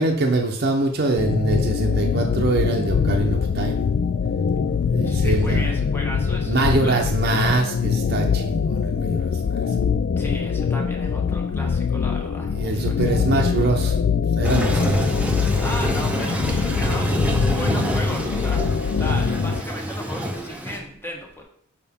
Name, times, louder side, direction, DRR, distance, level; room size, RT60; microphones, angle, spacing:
voice 1, 0.0-3.8 4.9-5.8 6.5-9.8 12.5-14.0 14.4-15.1, right 2 dB, 50° right, 1 dB, 0.7 m, -23 dB
sound 1, 1.2-19.6, left 6 dB, 55° left, 0.3 m, -23 dB
voice 2, 5.0-7.0 10.2-13.0 15.6-17.2 17.5-21.4, equal, 10° left, 1 dB, 1.1 m, -35 dB
Toilet flush, 14.4-20.8, equal, 5° right, 0.7 m, -26 dB
sound 2, 15.5-20.5, right 1 dB, 75° left, 1.6 m, -43 dB
6.8 x 4.9 x 3.6 m, 0.63 s
head